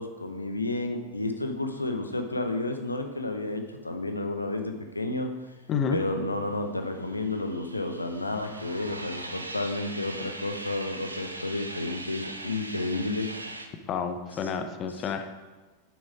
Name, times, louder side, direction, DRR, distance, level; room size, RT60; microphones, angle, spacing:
voice 1, 0.0-5.3 5.9-13.3, left 2 dB, 85° left, 5 dB, 0.7 m, -31 dB
sound 1, 6.5-13.7, right 2 dB, 80° right, 0.7 m, -40 dB
voice 2, 13.9-15.3, left 6 dB, 30° left, 7 dB, 0.7 m, -29 dB
6.9 x 6.3 x 4.9 m, 1.2 s
figure-of-eight pair, 90°, 0 cm